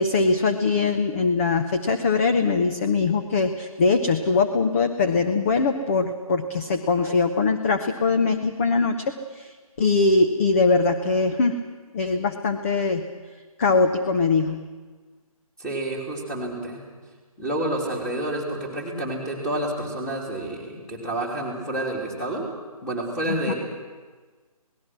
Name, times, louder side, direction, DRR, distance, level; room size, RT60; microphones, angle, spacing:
voice 1, 0.0-11.6 11.9-13.0 13.6-14.6 23.3-23.5, left 4 dB, 25° left, 6 dB, 0.8 m, -22 dB
voice 2, 15.6-16.8 17.4-22.4 22.8-23.5, right 1 dB, 5° left, -2 dB, 3.1 m, -29 dB
27.0 x 19.0 x 6.1 m, 1.4 s
figure-of-eight pair, 155°, 19 cm